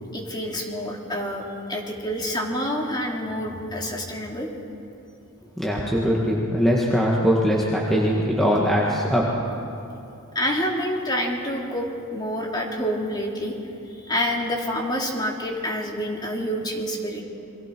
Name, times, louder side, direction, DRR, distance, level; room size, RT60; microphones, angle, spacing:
voice 1, 0.1-4.5 10.3-13.6 14.0-17.2, equal, 20° left, 0 dB, 2.7 m, -27 dB
voice 2, 5.6-9.3, equal, ahead, -4 dB, 1.8 m, -21 dB
29.0 x 23.5 x 4.6 m, 2.8 s
head